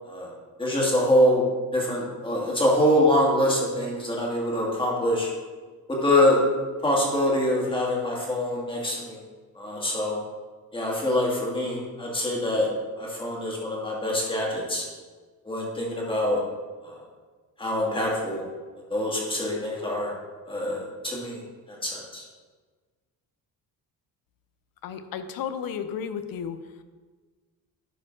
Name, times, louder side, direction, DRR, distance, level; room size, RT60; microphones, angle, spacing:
voice 1, 0.0-1.4 1.7-5.3 5.9-6.4 6.8-9.2 9.6-10.2 10.7-12.7 13.0-14.8 15.5-16.4 16.8-17.0 17.6-18.4 18.9-20.1 20.5-21.4 21.7-22.2, left 1 dB, 15° left, -3 dB, 2.0 m, -25 dB
voice 2, 24.8-26.6, left 7 dB, 85° left, 10 dB, 0.7 m, -33 dB
11.0 x 5.0 x 3.7 m, 1.4 s
cardioid pair, 135°, 34 cm